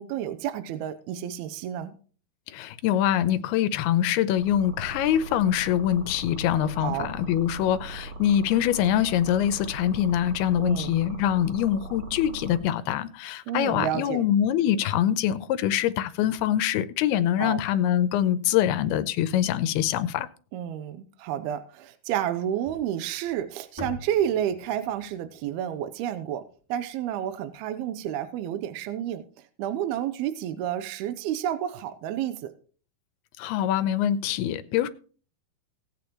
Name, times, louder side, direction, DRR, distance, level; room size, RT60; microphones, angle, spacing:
voice 1, 0.0-1.9 6.8-7.1 10.6-10.9 13.5-14.2 17.4-17.6 20.5-26.4 26.7-29.2 29.6-32.5, right 10 dB, 80° right, 2.7 m, -30 dB
voice 2, 2.5-20.3 33.4-34.9, left 11 dB, 80° left, 2.7 m, -24 dB
sound 1, 4.4-12.6, right 3 dB, 30° right, 1.8 m, -40 dB
sound 2, 22.6-26.9, left 2 dB, 5° right, 2.8 m, -44 dB
18.0 x 8.7 x 3.1 m
omnidirectional pair, 4.6 m